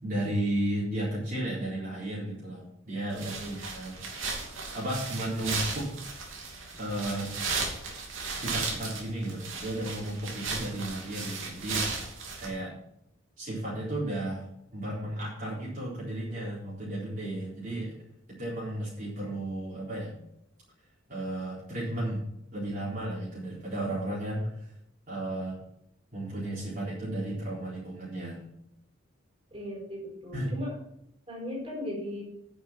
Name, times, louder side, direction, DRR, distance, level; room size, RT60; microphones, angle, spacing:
voice 1, 0.0-4.0 4.7-5.9 6.8-7.3 8.3-11.8 12.4-12.8 13.4-14.4 14.7-18.0 18.3-20.2 21.1-22.2 22.5-24.7 25.1-25.6 26.1-28.4 30.3-30.5, right 1 dB, 45° right, -7 dB, 4.1 m, -34 dB
sound 1, 3.1-12.5, right 4 dB, 85° right, 3.0 m, -35 dB
voice 2, 29.5-30.7 31.3-32.2, left 1 dB, 30° right, -2 dB, 4.8 m, -37 dB
9.8 x 7.3 x 6.3 m, 0.78 s
head